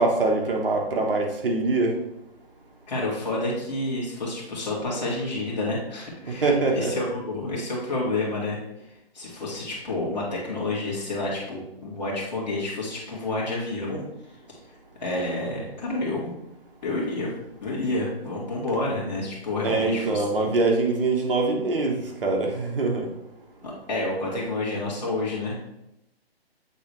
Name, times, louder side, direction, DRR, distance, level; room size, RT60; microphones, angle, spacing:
voice 1, 0.0-1.9 6.4-6.9 19.6-23.1, right 3 dB, 60° right, 1 dB, 1.3 m, -23 dB
voice 2, 2.9-8.6 8.9-14.1 15.0-16.3 16.8-17.3 17.6-20.5 23.6-25.7, left 2 dB, 45° left, -4 dB, 2.0 m, -29 dB
8.3 x 3.8 x 3.1 m, 0.86 s
hypercardioid pair, 175°, 31 cm